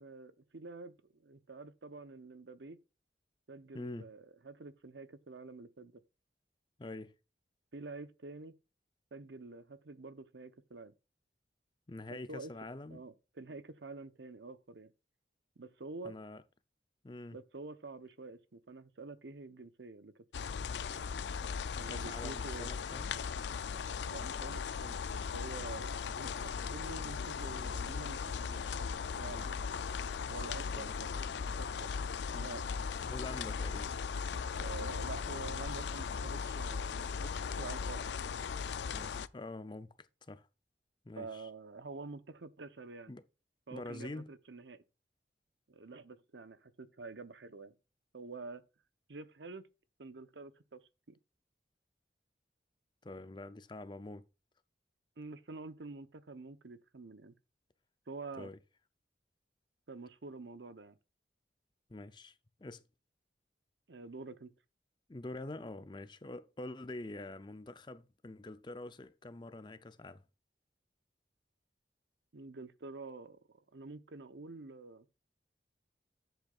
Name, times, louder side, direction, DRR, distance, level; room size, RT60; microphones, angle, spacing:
voice 1, 0.0-2.8 3.5-6.0 7.7-8.5 9.1-10.9 12.1-12.5 12.9-14.9 15.6-16.1 17.3-20.2 21.8-22.7 24.1-29.6 30.3-31.3 31.5-31.9 32.3-32.6 34.5-38.0 41.2-43.1 43.7-44.8 45.7-47.7 48.1-48.6 49.1-49.6 50.0-50.8 51.1-51.2 55.2-57.4 58.1-58.5 59.9-61.0 63.9-64.5 72.3-73.4 73.7-75.1, right 3 dB, 90° right, 0.9 m, -48 dB
voice 2, 3.7-4.1 6.8-7.1 11.9-13.0 16.0-16.4 17.0-17.4 21.9-23.1 30.7-30.9 33.0-34.0 38.9-40.5 41.0-41.5 43.1-43.2 43.7-44.3 53.0-54.2 58.4-58.6 61.9-62.8 65.1-70.2, left 2 dB, 25° left, 0.6 m, -46 dB
sound 1, 20.3-39.3, left 6 dB, 80° left, 0.4 m, -38 dB
10.5 x 8.1 x 2.4 m
head